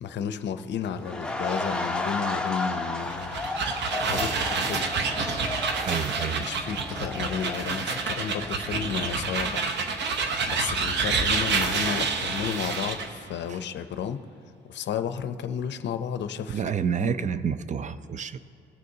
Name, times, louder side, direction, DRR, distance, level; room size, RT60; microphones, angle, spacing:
voice 1, 0.0-3.5 4.0-4.9 6.4-9.8 10.5-14.2 14.7-16.6 17.0-17.1, left 8 dB, 65° left, 10 dB, 0.6 m, -32 dB
sound 1, 1.0-9.8 10.2-10.4, left 2 dB, 5° left, 0.7 m, -34 dB
sound 2, 3.0-13.1, right 4 dB, 60° right, 0.8 m, -28 dB
voice 2, 5.8-6.4 13.5-13.6 16.5-18.4, right 7 dB, 40° right, 13 dB, 0.4 m, -29 dB
18.5 x 6.5 x 2.7 m, 2.9 s
cardioid pair, 90°, 20 cm